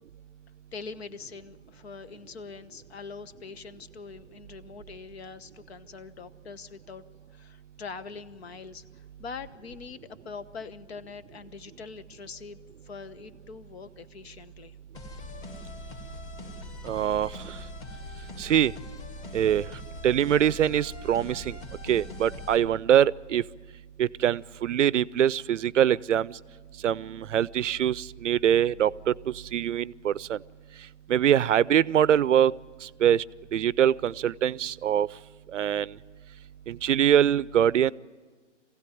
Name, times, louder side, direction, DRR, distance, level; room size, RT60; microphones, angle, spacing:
voice 1, 0.7-7.0 7.3-14.8, left 5 dB, 55° left, 13 dB, 1.1 m, -43 dB
sound 1, 14.9-22.6, left 1 dB, 25° left, 2.1 m, -41 dB
voice 2, 16.8-17.6 18.4-18.7 19.3-19.7 20.0-21.6 21.8-23.4 24.0-26.4 26.8-30.4 31.1-32.5 32.8-33.2 33.5-35.1 35.5-36.0 36.7-37.9, right 10 dB, 80° right, 22 dB, 0.6 m, -23 dB
23.5 x 16.5 x 9.2 m, 1.4 s
hypercardioid pair, 155°, 36 cm